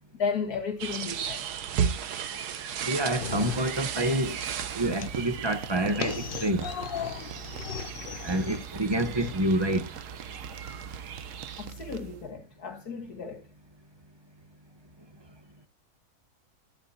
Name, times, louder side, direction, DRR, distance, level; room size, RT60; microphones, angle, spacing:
voice 1, 0.1-1.4 11.6-13.4, left 5 dB, 75° left, 2.7 m, -33 dB
sound 1, 0.8-11.7, right 8 dB, 85° right, 1.5 m, -36 dB
voice 2, 2.9-4.4 4.7-6.7 8.2-9.8, right 1 dB, 20° right, 0.8 m, -27 dB
sound 2, 2.9-12.3, right 7 dB, 60° right, 1.0 m, -43 dB
sound 3, 3.2-4.1 4.4-9.3, left 8 dB, 60° left, 0.6 m, -37 dB
12.5 x 11.5 x 2.7 m
omnidirectional pair, 1.7 m